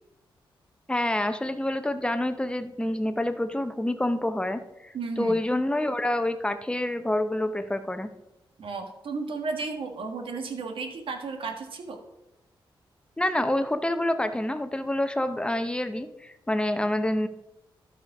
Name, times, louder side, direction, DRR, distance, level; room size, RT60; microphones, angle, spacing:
voice 1, 0.9-8.1 13.2-17.3, left 1 dB, 10° left, 9 dB, 0.8 m, -27 dB
voice 2, 4.9-5.4 8.6-12.0, right 4 dB, 75° right, 5 dB, 1.5 m, -33 dB
12.5 x 5.1 x 4.8 m, 0.89 s
cardioid pair, 85°, 9 cm